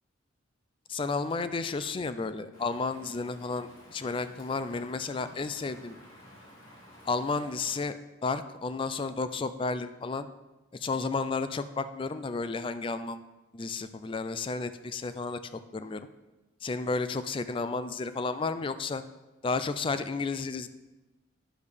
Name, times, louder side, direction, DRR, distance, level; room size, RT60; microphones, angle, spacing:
voice 1, 0.9-6.0 7.1-8.0 8.2-10.3 10.7-13.2 13.5-15.4 15.7-16.1 16.6-19.0 19.4-20.7, left 4 dB, 25° left, 12 dB, 0.3 m, -32 dB
Rain, 2.5-7.8, equal, 90° left, 2.4 m, -53 dB
10.0 x 6.7 x 3.5 m, 1.1 s
head